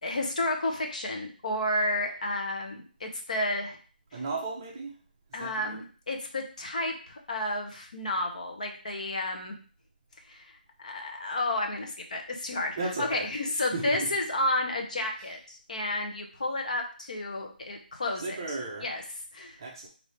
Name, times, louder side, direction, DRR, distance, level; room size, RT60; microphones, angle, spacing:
voice 1, 0.0-3.8 4.1-4.2 5.3-9.6 10.3-10.5 10.8-19.0 19.3-19.6, left 1 dB, 45° left, 3 dB, 0.8 m, -31 dB
voice 2, 4.1-4.9 5.4-5.8 12.8-13.2 13.7-14.1 18.2-18.9 19.6-19.9, right 3 dB, 20° right, -2 dB, 0.7 m, -34 dB
4.8 x 2.7 x 3.3 m, 0.39 s
figure-of-eight pair, 170°, 5 cm